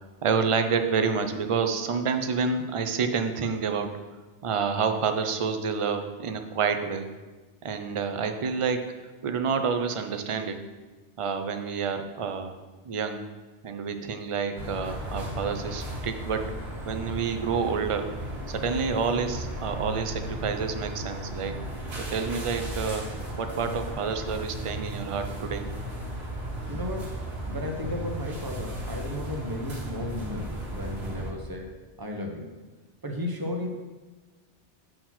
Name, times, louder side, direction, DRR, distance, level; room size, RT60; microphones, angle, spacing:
voice 1, 0.2-4.0 4.4-7.1 7.6-8.9 9.2-10.6 11.2-12.6 12.8-13.3 13.6-16.5 16.8-18.1 18.5-21.6 22.0-23.1 23.4-25.7, right 5 dB, 40° right, 7 dB, 0.4 m, -28 dB
sound 1, 14.6-31.3, equal, 65° right, 1.6 m, -35 dB
voice 2, 26.7-27.2 27.4-31.7 32.0-32.5 33.0-33.9, left 1 dB, 20° right, 1 dB, 0.9 m, -34 dB
7.6 x 4.3 x 5.9 m, 1.2 s
omnidirectional pair, 1.2 m